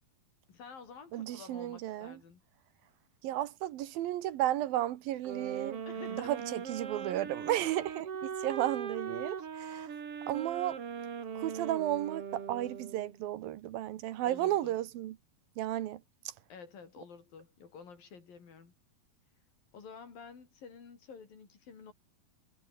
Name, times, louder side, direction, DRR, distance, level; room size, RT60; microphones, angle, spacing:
voice 1, 0.5-2.4 5.9-6.3 9.4-9.5 14.2-14.8 16.5-18.7 19.7-21.9, left 5 dB, 70° left, 6.3 m, -50 dB
voice 2, 1.1-2.2 3.2-5.8 6.2-9.9 10.3-10.8 11.4-15.2 15.6-16.0, right 13 dB, 75° right, 2.9 m, -33 dB
sound 1, 5.2-13.2, right 7 dB, 45° right, 2.9 m, -40 dB
omnidirectional pair, 4.3 m